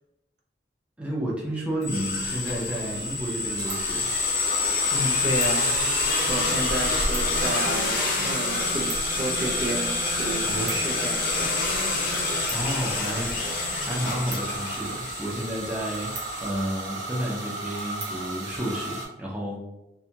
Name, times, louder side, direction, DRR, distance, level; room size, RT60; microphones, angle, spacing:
voice 1, 1.0-4.1 10.4-10.8 12.1-13.4 13.8-19.6, right 1 dB, 5° right, -4 dB, 0.5 m, -31 dB
sound 1, 1.5-1.6 1.8-1.9 2.5-2.6 3.6-19.1, right 2 dB, 80° right, 0.9 m, -36 dB
sound 2, 1.8-16.5, left 3 dB, 50° left, 0.6 m, -27 dB
voice 2, 4.9-5.7 6.3-8.0 8.2-11.4, right 1 dB, 65° right, 0 dB, 0.5 m, -31 dB
2.6 x 2.2 x 2.8 m, 0.95 s
head